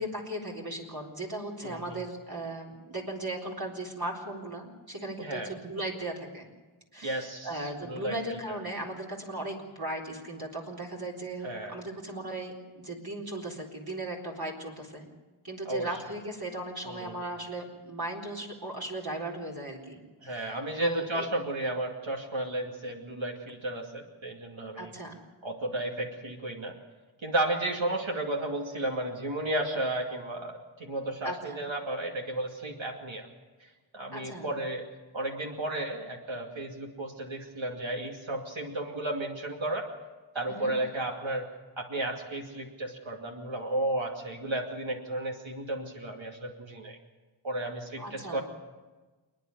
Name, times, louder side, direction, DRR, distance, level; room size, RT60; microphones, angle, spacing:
voice 1, 0.0-6.5 6.9-15.1 15.4-21.3 24.8-25.2 31.2-31.6 34.1-34.5 40.5-40.7 48.0-48.4, right 1 dB, 45° right, -2 dB, 4.0 m, -37 dB
voice 2, 1.6-2.0 5.2-5.5 7.0-8.6 11.4-11.8 15.6-15.9 16.9-17.2 20.2-24.9 25.4-26.8 27.2-33.3 33.9-34.8 35.1-39.9 40.3-41.5 41.8-47.0 47.4-48.4, right 1 dB, 65° right, 0 dB, 2.6 m, -33 dB
28.5 x 9.8 x 9.6 m, 1.3 s
wide cardioid pair, 50°, 49 cm